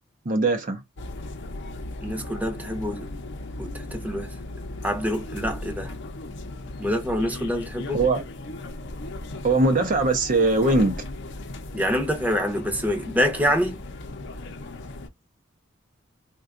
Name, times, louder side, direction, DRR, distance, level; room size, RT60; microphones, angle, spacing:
voice 1, 0.3-0.8 7.9-8.2 9.4-11.0, right 2 dB, 45° right, 0.6 m, -21 dB
sound 1, 1.0-15.1, left 2 dB, 60° left, 0.6 m, -37 dB
voice 2, 2.0-3.1 3.6-4.3 4.8-5.9 6.8-8.0 11.7-13.8, equal, 10° right, 0.8 m, -26 dB
3.7 x 2.2 x 2.4 m
head